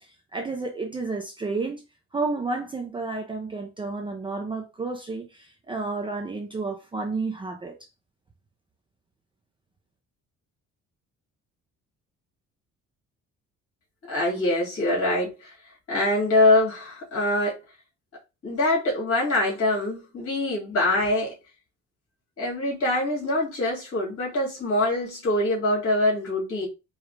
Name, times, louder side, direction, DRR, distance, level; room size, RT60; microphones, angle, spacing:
voice 1, 0.3-1.8 2.1-7.7, right 3 dB, 15° right, 0.5 m, -31 dB
voice 2, 14.1-15.5 15.9-17.6 18.4-21.3 22.4-26.7, left 1 dB, 50° left, 2.5 m, -24 dB
4.8 x 2.4 x 3.2 m
cardioid pair, 165°, 30 cm